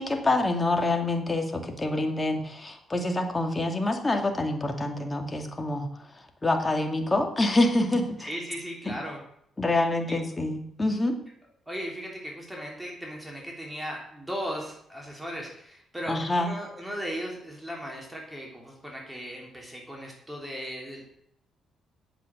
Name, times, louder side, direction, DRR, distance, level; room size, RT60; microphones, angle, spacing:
voice 1, 0.0-8.3 8.9-9.0 9.6-11.2 16.1-16.5, left 2 dB, 20° left, 4 dB, 2.2 m, -26 dB
voice 2, 8.2-9.2 10.1-10.2 11.7-21.0, equal, 5° right, -1 dB, 3.3 m, -37 dB
9.1 x 7.7 x 7.9 m, 0.73 s
cardioid pair, 90°, 0 cm